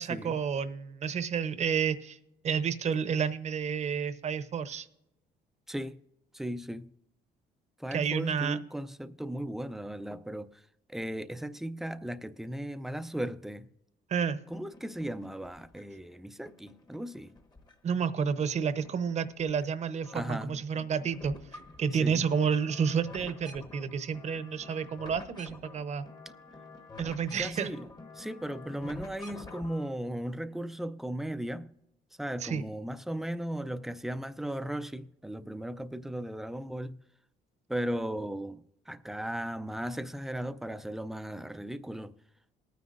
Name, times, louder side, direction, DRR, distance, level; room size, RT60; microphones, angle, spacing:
voice 1, 0.0-2.2 2.4-4.9 7.9-8.6 14.1-14.4 17.8-21.3 21.8-26.1 27.0-27.7 32.4-32.6, right 6 dB, 40° right, 0.8 m, -30 dB
voice 2, 5.7-6.0 6.3-6.9 7.8-10.6 10.9-13.7 14.5-17.4 20.1-20.6 22.0-22.3 27.3-27.9 28.1-31.8 32.2-37.0 37.7-42.2, right 1 dB, ahead, 0.4 m, -36 dB
sound 1, 14.5-16.0 16.5-18.0 18.4-19.7 19.9-29.9, left 2 dB, 25° left, 1.0 m, -49 dB
19.5 x 9.3 x 2.5 m
cardioid pair, 110°, 17 cm